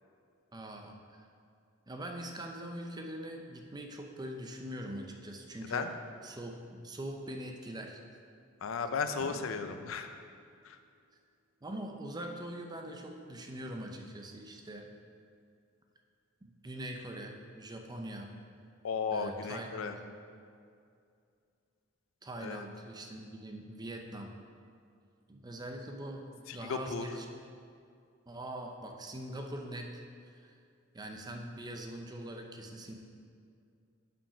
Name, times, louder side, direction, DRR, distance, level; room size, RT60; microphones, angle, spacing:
voice 1, 0.5-1.3 1.9-5.9 6.2-8.0 9.3-9.5 11.6-14.9 16.6-18.3 19.1-20.0 22.2-24.4 25.3-27.3 28.3-29.9 30.4-30.5 30.9-33.0, right 1 dB, 20° right, 3 dB, 0.5 m, -42 dB
voice 2, 8.6-10.1 10.6-10.8 18.8-20.0 22.4-22.7 26.5-27.1, left 5 dB, 75° left, 8 dB, 0.4 m, -35 dB
Drum, 9.2-11.1, right 1 dB, 65° right, 1.1 m, -55 dB
5.8 x 5.2 x 4.8 m, 2.4 s
head